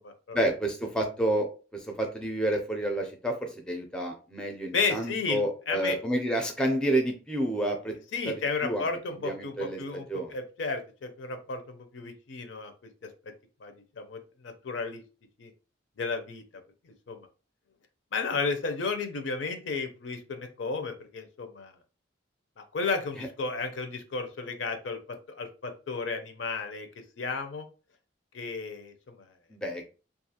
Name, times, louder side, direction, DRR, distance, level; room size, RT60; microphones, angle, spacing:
voice 1, 0.3-1.5 1.7-7.9 8.3-8.8 9.2-9.8 10.1-10.3 29.5-29.9, right 1 dB, 5° left, 2 dB, 0.4 m, -29 dB
voice 2, 4.7-6.0 8.1-12.7 13.0-13.3 13.6-15.0 15.4-15.5 16.0-16.4 16.8-17.3 18.1-21.7 22.6-26.9 27.2-27.7 28.3-29.3, left 4 dB, 70° left, 6 dB, 0.5 m, -33 dB
2.4 x 2.4 x 2.7 m, 0.34 s
head